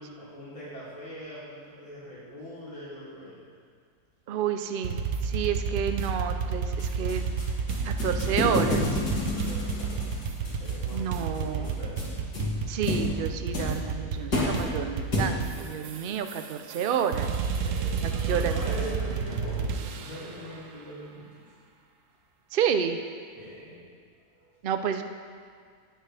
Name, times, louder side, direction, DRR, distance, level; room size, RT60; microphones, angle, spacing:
voice 1, 0.0-3.3 9.2-10.1 10.6-12.2 17.5-21.2 23.4-23.8 24.3-24.5, equal, 65° left, -10 dB, 3.9 m, -41 dB
voice 2, 4.3-7.3 7.8-8.9 10.9-11.7 12.7-17.3 18.0-18.6 22.5-23.0 24.6-25.0, right 8 dB, 85° right, 7 dB, 0.4 m, -30 dB
sound 1, 4.8-20.4, right 5 dB, 60° right, 1.0 m, -31 dB
sound 2, 6.8-15.7, left 2 dB, 90° left, 3.1 m, -31 dB
18.5 x 7.9 x 3.4 m, 2.1 s
omnidirectional pair, 1.7 m